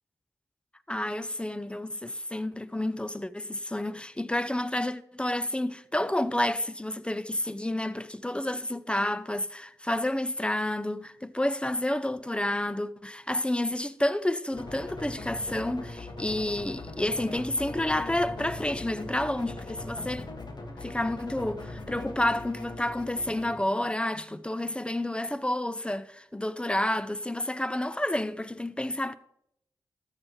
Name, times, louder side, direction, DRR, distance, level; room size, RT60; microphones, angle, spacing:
voice 1, 0.9-20.3 20.8-29.1, left 1 dB, 10° left, 0.6 m, -30 dB
sound 1, 14.5-23.6, left 2 dB, 55° left, 1.9 m, -40 dB
13.5 x 9.0 x 3.2 m
cardioid pair, 45°, 9 cm